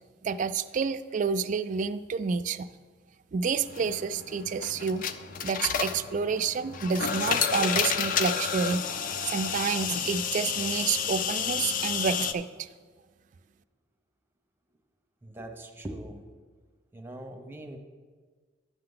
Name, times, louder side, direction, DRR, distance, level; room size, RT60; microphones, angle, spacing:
voice 1, 0.2-2.7 3.3-5.0 5.4-8.8 9.3-12.7, right 5 dB, 40° right, 10 dB, 0.3 m, -29 dB
sound 1, 3.6-12.3, left 7 dB, 45° left, 0.4 m, -30 dB
voice 2, 15.2-16.3 16.9-17.8, right 1 dB, 10° right, 4 dB, 0.7 m, -41 dB
11.0 x 6.6 x 3.9 m, 1.5 s
head